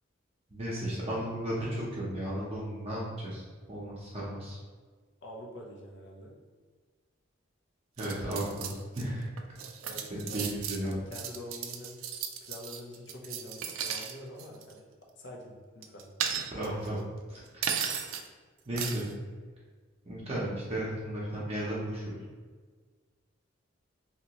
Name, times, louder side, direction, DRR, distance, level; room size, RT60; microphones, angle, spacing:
voice 1, 0.5-3.4 3.7-4.6 8.0-9.2 10.1-11.0 16.5-17.0 17.3-17.6 18.7-19.1 20.0-22.2, right 1 dB, 30° right, -7 dB, 0.7 m, -34 dB
voice 2, 5.2-6.3 9.8-10.5 10.8-12.1 12.4-14.8 15.2-16.1, left 1 dB, 60° left, -1 dB, 0.6 m, -46 dB
sound 1, 8.0-9.0 9.4-14.1 14.4-14.7 15.8-16.9 17.6-18.3 18.8-19.1, right 8 dB, 85° right, 0.3 m, -35 dB
2.9 x 2.8 x 2.8 m, 1.5 s
head